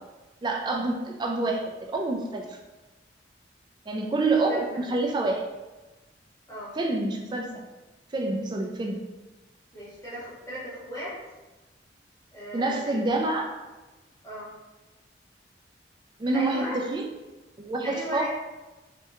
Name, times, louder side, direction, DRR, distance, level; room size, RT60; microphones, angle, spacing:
voice 1, 0.4-2.4 3.9-5.4 6.8-7.7 8.1-9.0 12.5-13.5 16.2-17.1 17.6-18.3, right 2 dB, 25° right, 1 dB, 0.3 m, -27 dB
voice 2, 9.7-11.2 12.3-13.2 14.2-14.5 16.3-16.8 17.8-18.3, equal, 15° left, -10 dB, 1.1 m, -37 dB
3.3 x 2.2 x 2.9 m, 1.1 s
head